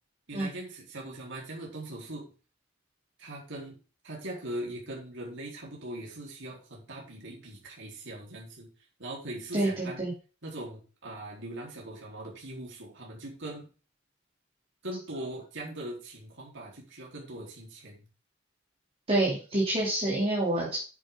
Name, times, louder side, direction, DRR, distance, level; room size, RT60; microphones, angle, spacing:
voice 1, 0.3-2.3 3.2-3.8 4.0-8.7 9.0-10.0 10.4-13.7 14.8-18.1, right 1 dB, 60° right, -2 dB, 4.1 m, -40 dB
voice 2, 9.5-10.1 19.1-20.8, right 1 dB, 30° right, -5 dB, 3.2 m, -27 dB
10.0 x 7.9 x 3.9 m, 0.35 s
head